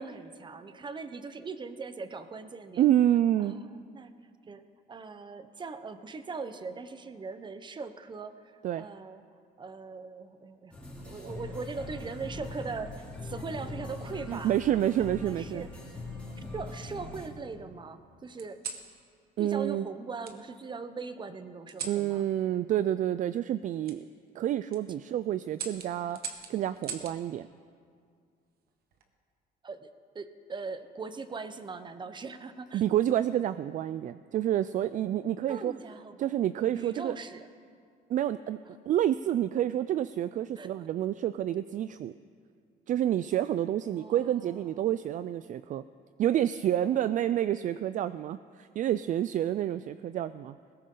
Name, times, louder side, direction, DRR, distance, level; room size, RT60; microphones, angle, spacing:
voice 1, 0.0-2.8 3.4-4.1 4.5-9.2 9.6-10.7 11.1-14.5 15.0-15.7 16.5-18.6 19.4-22.3 29.6-32.8 35.5-36.3 36.7-37.5 40.6-40.7 43.8-44.9, right 4 dB, 25° right, 10 dB, 0.9 m, -40 dB
voice 2, 2.8-3.5 8.6-8.9 14.3-15.6 19.4-19.9 21.8-24.0 24.3-26.2 26.5-27.5 32.7-35.7 36.2-37.2 38.1-38.6 38.9-42.1 42.9-45.8 46.2-50.6, right 11 dB, 50° right, 14 dB, 0.4 m, -28 dB
sound 1, 10.7-17.3, left 2 dB, 5° left, 3.1 m, -41 dB
sound 2, 11.0-12.1 13.2-13.6 14.9-15.6 16.2-17.1 18.4-18.9 20.2-20.4 21.7-22.0 23.8-24.0 24.5-24.8 25.5-27.2 28.7-29.1, right 6 dB, 65° right, 1.5 m, -43 dB
20.0 x 17.0 x 3.9 m, 2.2 s
cardioid pair, 110°, 17 cm